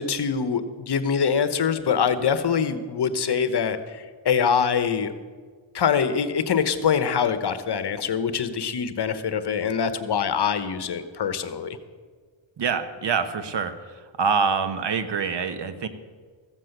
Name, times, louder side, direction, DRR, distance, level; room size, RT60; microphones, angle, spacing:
voice 1, 0.0-5.1 5.7-11.8, left 7 dB, 55° left, 11 dB, 1.0 m, -24 dB
voice 2, 12.6-13.7 14.2-15.9, right 6 dB, 55° right, 10 dB, 1.1 m, -25 dB
14.5 x 7.6 x 6.6 m, 1.5 s
cardioid pair, 90°, 49 cm